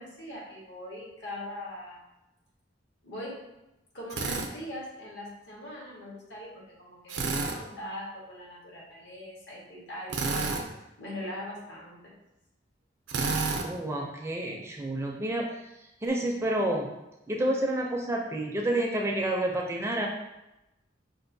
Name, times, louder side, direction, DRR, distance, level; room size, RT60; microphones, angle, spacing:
voice 1, 0.0-2.0 3.0-3.4 3.9-10.5 11.0-12.1, left 1 dB, 75° left, -4 dB, 1.3 m, -41 dB
Drill, 4.1-4.5 7.1-7.6 10.1-10.7 13.1-13.7, right 4 dB, 85° right, 0.5 m, -29 dB
voice 2, 13.6-15.5 16.0-16.9 17.3-20.1, right 1 dB, 15° right, 0 dB, 0.4 m, -29 dB
5.3 x 2.5 x 2.6 m, 0.95 s
head